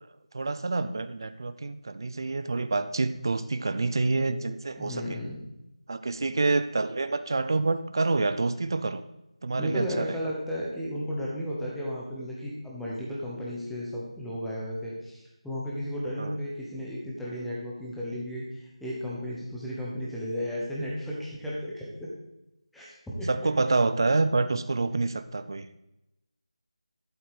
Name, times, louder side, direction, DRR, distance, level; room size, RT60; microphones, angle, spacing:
voice 1, 0.3-5.2 5.9-9.0 9.4-10.3 16.2-16.3 23.3-25.8, right 3 dB, 40° right, 13 dB, 0.7 m, -27 dB
voice 2, 4.8-5.4 9.6-22.1 22.7-22.9 23.2-23.3, equal, ahead, -7 dB, 1.1 m, -34 dB
11.5 x 7.6 x 5.0 m, 0.91 s
figure-of-eight pair, 175°, 3 cm